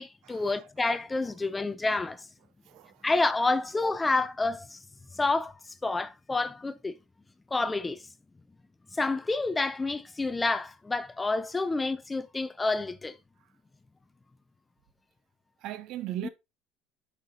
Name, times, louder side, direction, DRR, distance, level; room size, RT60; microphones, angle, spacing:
voice 1, 0.0-2.2 3.0-4.8 5.2-5.5 5.8-7.0 7.5-8.0 9.0-13.2, left 3 dB, 10° left, 0.3 m, -28 dB
voice 2, 15.6-16.3, right 13 dB, 55° right, 0.7 m, -37 dB
8.1 x 5.4 x 2.8 m
cardioid pair, 150°, 0 cm